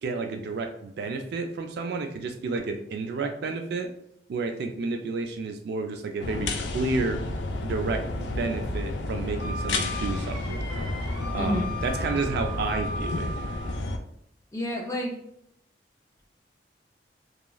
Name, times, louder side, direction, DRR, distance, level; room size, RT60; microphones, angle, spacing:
voice 1, 0.0-3.9 4.3-7.2 7.6-10.7 11.3-13.3, right 3 dB, 65° right, 5 dB, 0.3 m, -31 dB
sound 1, 6.2-14.0, left 2 dB, 80° left, 0.4 m, -31 dB
Wind instrument woodwind instrument, 9.4-13.8, left 1 dB, 30° right, 1.4 m, -38 dB
voice 2, 11.3-11.7 14.5-15.2, equal, 20° left, -1 dB, 0.5 m, -29 dB
2.9 x 2.3 x 2.3 m, 0.76 s
head